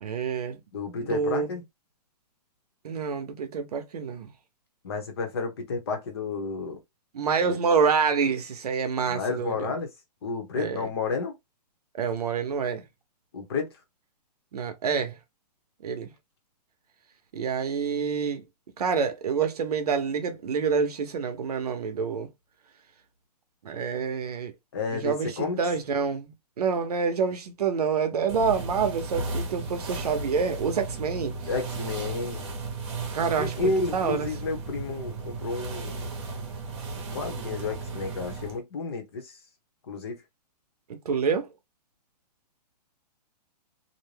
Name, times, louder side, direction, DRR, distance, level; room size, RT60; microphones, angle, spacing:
voice 1, 0.0-0.6 1.0-1.6 2.8-4.3 7.1-9.7 10.6-10.9 11.9-12.9 14.5-15.2 15.8-16.1 17.3-18.4 18.8-22.3 23.6-24.5 24.9-31.4 33.1-34.3 40.9-41.5, right 6 dB, 65° right, 0.7 m, -27 dB
voice 2, 0.7-1.6 4.8-6.8 7.4-7.6 9.1-9.9 10.2-11.4 13.3-13.7 24.7-25.6 31.5-32.5 33.4-35.9 36.9-39.4 39.9-40.2, left 4 dB, 35° left, 0.8 m, -31 dB
sound 1, 28.3-38.6, right 3 dB, 40° right, 0.8 m, -35 dB
2.6 x 2.1 x 3.1 m
hypercardioid pair, 175°, 21 cm